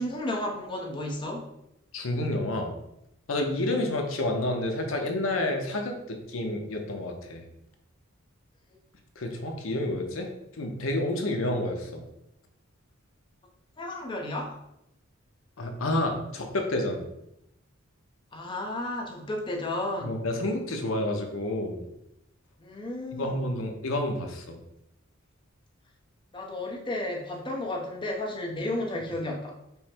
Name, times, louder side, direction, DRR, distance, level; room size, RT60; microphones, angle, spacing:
voice 1, 0.0-1.5 13.8-14.6 18.3-20.1 22.6-23.4 26.3-29.8, left 1 dB, 20° left, 0 dB, 0.7 m, -33 dB
voice 2, 1.9-2.7 3.3-7.4 9.2-10.3 10.6-12.0 15.6-17.0 20.0-21.8 23.1-24.6, left 1 dB, 65° left, 3 dB, 0.7 m, -29 dB
5.4 x 2.1 x 4.4 m, 0.84 s
head